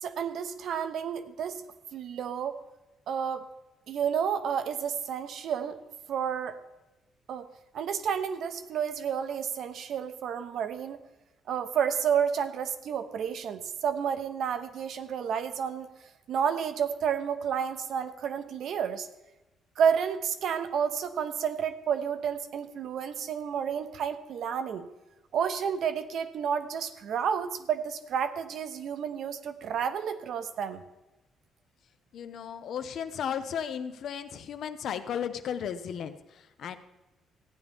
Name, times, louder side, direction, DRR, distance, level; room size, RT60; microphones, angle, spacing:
voice 1, 0.0-1.6 1.9-2.6 3.1-3.5 3.9-5.8 6.1-6.6 7.3-7.5 7.7-11.0 11.5-15.9 16.3-19.1 19.8-24.9 25.3-30.8, right 7 dB, 70° right, 10 dB, 0.9 m, -30 dB
voice 2, 32.1-36.8, left 8 dB, 65° left, 10 dB, 0.8 m, -35 dB
15.5 x 9.7 x 3.6 m, 1.0 s
cardioid pair, 110°, 0 cm